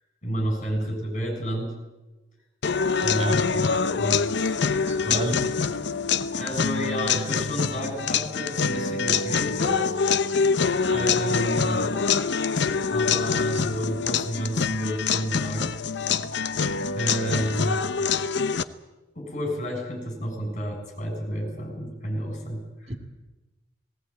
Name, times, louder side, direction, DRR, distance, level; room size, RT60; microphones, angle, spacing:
voice 1, 0.2-1.7 3.0-4.5 5.0-5.4 6.3-9.9 10.3-10.4 10.9-11.9 12.9-15.8 17.0-17.8 19.2-22.9, equal, 40° left, 3 dB, 7.0 m, -30 dB
sound 1, 2.6-18.6, left 5 dB, 65° left, 0.8 m, -25 dB
voice 2, 3.1-3.5 4.7-5.5 10.8-11.1 17.2-17.5 22.9-23.0, right 2 dB, 35° right, 3 dB, 2.5 m, -34 dB
19.0 x 18.0 x 8.8 m, 1.1 s
head